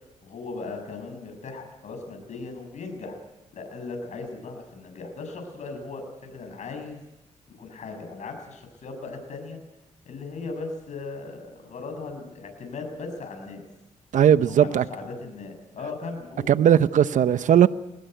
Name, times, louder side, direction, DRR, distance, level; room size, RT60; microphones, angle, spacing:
voice 1, 0.2-3.2 3.5-7.0 7.6-9.6 10.1-13.6 14.5-16.5, left 3 dB, 65° left, 7.1 m, -37 dB
voice 2, 14.1-14.8 16.5-17.7, right 9 dB, 70° right, 0.9 m, -18 dB
21.5 x 19.5 x 9.2 m
cardioid pair, 75°, 13 cm